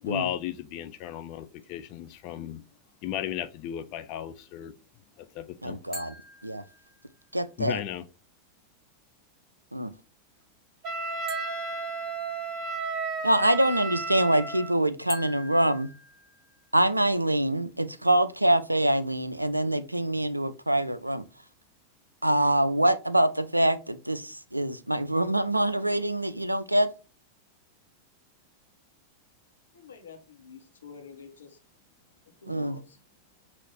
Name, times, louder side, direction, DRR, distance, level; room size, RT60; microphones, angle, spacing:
voice 1, 0.0-2.6 3.0-4.7 5.2-5.8 7.6-8.0, left 11 dB, 40° left, 0.3 m, -35 dB
voice 2, 5.6-6.1 6.4-6.6 7.3-7.8 9.7-9.9 13.2-15.9 16.7-21.2 22.2-26.9 32.5-32.8, right 1 dB, 85° right, 0.3 m, -25 dB
sound 1, 5.9-7.2 11.3-12.8 15.1-16.8, left 1 dB, 10° left, 1.7 m, -45 dB
Wind instrument woodwind instrument, 10.8-14.7, right 4 dB, 35° right, 2.3 m, -33 dB
voice 3, 29.7-31.6 32.4-33.0, left 5 dB, 70° left, 1.0 m, -48 dB
5.6 x 2.5 x 3.3 m
figure-of-eight pair, 90°, 0 cm